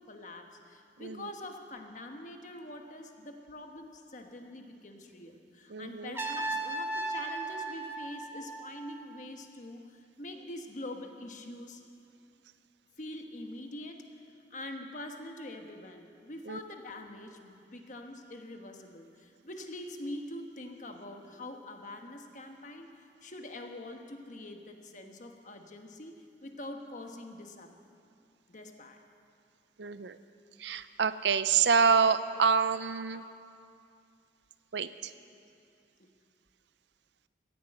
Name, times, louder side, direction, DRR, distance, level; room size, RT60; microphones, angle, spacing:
voice 1, 0.0-11.8 13.0-14.1 14.5-27.7 28.5-29.0 36.0-36.1, left 1 dB, 45° left, 4 dB, 1.3 m, -44 dB
voice 2, 1.0-1.3 5.7-6.1 16.5-16.6 29.8-30.2 30.6-33.2 34.7-35.1, right 6 dB, 70° right, 13 dB, 0.6 m, -27 dB
Trumpet, 6.1-9.1, right 2 dB, 10° right, 1.1 m, -36 dB
17.0 x 10.5 x 7.8 m, 2.5 s
head